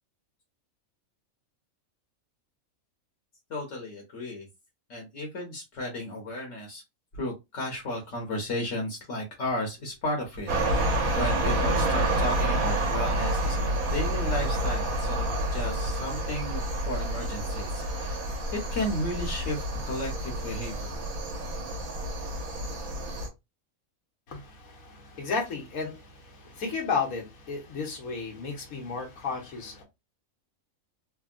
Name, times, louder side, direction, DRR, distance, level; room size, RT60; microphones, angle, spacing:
voice 1, 3.5-4.5 4.9-6.8 7.1-18.2 18.5-21.1, left 1 dB, 65° left, 1.2 m, -34 dB
sound 1, 10.5-23.3, right 1 dB, 80° right, 1.3 m, -28 dB
voice 2, 24.3-29.8, left 5 dB, 80° left, 1.5 m, -33 dB
3.4 x 2.2 x 2.4 m
omnidirectional pair, 1.5 m